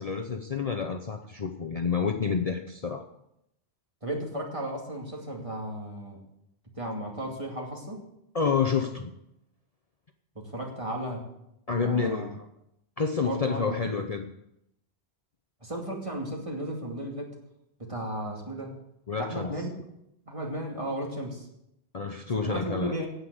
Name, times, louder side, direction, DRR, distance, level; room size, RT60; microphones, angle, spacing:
voice 1, 0.0-3.0 8.3-9.1 11.7-12.5 13.0-14.3 19.1-19.5 21.9-22.9, left 5 dB, 40° left, 5 dB, 0.8 m, -29 dB
voice 2, 4.0-6.2 6.8-8.0 10.4-11.2 11.8-12.3 13.2-13.8 15.6-17.3 17.8-18.8 19.2-19.7 20.3-21.5 22.4-23.1, right 1 dB, 30° right, -1 dB, 2.5 m, -34 dB
9.5 x 8.4 x 7.9 m, 0.81 s
omnidirectional pair, 1.1 m